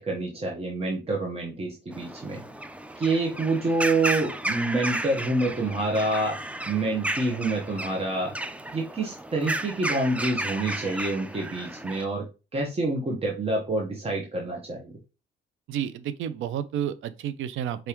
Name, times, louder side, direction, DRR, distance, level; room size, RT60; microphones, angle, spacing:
voice 1, 0.0-2.4 3.0-6.4 6.7-8.3 8.7-12.3 12.5-15.0, right 2 dB, 30° right, 1.2 m, -27 dB
sound 1, 1.9-12.0, right 1 dB, 5° right, 0.4 m, -33 dB
voice 2, 15.7-17.9, right 9 dB, 80° right, 0.6 m, -31 dB
4.6 x 3.5 x 3.0 m
cardioid pair, 90°, 20 cm